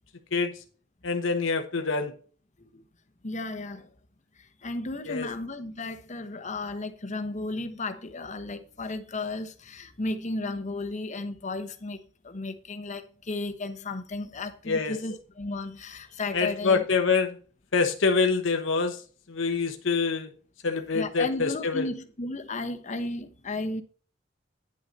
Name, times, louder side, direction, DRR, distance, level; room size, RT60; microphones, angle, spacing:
voice 1, 0.3-0.6 1.0-2.1 5.1-5.3 14.6-15.0 16.3-17.4 17.7-19.0 19.3-20.3 20.6-21.9, left 4 dB, 85° left, 1.0 m, -25 dB
voice 2, 3.2-3.9 4.4-16.8 20.9-23.8, left 2 dB, 40° left, 1.1 m, -34 dB
9.9 x 6.4 x 4.1 m
head